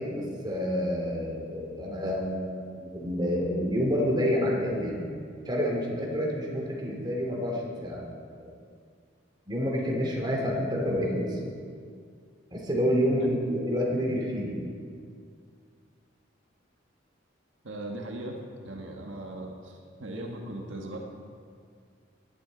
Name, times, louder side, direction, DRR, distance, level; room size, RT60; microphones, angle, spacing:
voice 1, 0.0-5.0 5.5-8.0 8.4-8.5 9.5-11.4 12.5-14.5, equal, 25° right, -2 dB, 2.6 m, -28 dB
voice 2, 17.6-21.0, right 1 dB, 80° right, 1 dB, 1.6 m, -38 dB
18.0 x 12.0 x 4.0 m, 2.1 s
head